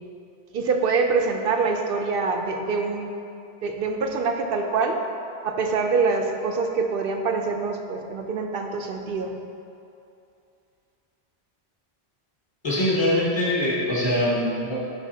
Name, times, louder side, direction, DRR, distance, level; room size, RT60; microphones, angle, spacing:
voice 1, 0.5-3.1 3.6-5.0 5.4-9.3, right 4 dB, 65° right, 4 dB, 0.7 m, -25 dB
voice 2, 12.6-14.8, left 1 dB, 25° left, -9 dB, 1.7 m, -23 dB
10.5 x 5.4 x 2.7 m, 2.6 s
omnidirectional pair, 1.1 m